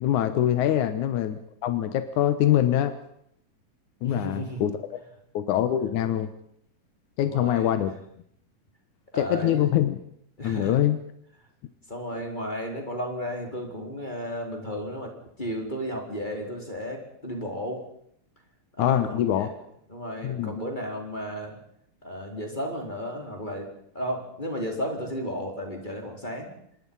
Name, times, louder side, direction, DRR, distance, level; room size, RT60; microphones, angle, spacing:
voice 1, 0.0-2.9 4.0-4.7 5.3-6.3 7.2-7.9 9.1-10.0 10.4-11.0 18.8-19.5 20.2-20.5, left 11 dB, 70° left, 10 dB, 2.4 m, -24 dB
voice 2, 4.0-4.6 7.2-7.7 9.1-9.7 10.4-10.8 11.9-15.1 15.4-17.9 18.8-19.5 19.9-21.6 22.0-23.7 23.9-26.5, equal, 15° left, 2 dB, 4.2 m, -33 dB
26.0 x 22.5 x 5.5 m, 0.68 s
omnidirectional pair, 3.9 m